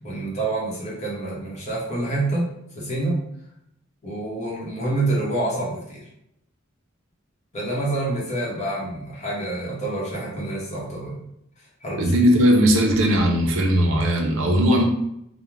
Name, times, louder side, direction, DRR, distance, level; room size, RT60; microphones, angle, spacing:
voice 1, 0.0-2.5 2.7-3.2 4.0-6.0 7.5-11.2 11.8-12.1, right 2 dB, 35° left, -5 dB, 0.8 m, -27 dB
voice 2, 12.0-14.8, equal, 65° right, 2 dB, 0.5 m, -18 dB
2.4 x 2.0 x 3.0 m, 0.79 s
head